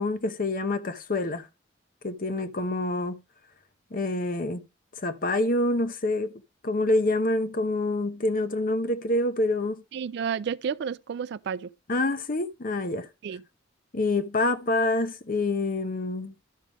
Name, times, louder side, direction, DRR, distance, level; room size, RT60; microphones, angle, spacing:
voice 1, 0.0-1.5 2.0-3.2 3.9-4.6 5.0-6.3 6.6-9.8 11.9-13.1 13.9-16.3, left 2 dB, 45° left, 0.8 m, -26 dB
voice 2, 9.9-11.7 13.2-13.4, right 7 dB, 60° right, 0.3 m, -31 dB
12.0 x 5.1 x 3.3 m
head